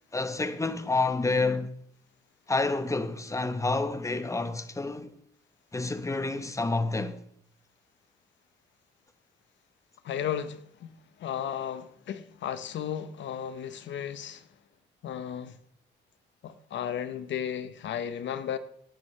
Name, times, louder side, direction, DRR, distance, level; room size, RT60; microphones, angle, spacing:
voice 1, 0.1-1.7 2.5-5.1 5.7-7.2, left 3 dB, 15° left, 1.0 m, -29 dB
voice 2, 10.0-10.9 11.2-14.5 15.0-15.6 16.4-18.6, left 9 dB, 70° left, 0.9 m, -34 dB
17.0 x 10.0 x 3.3 m
cardioid pair, 90°, 20 cm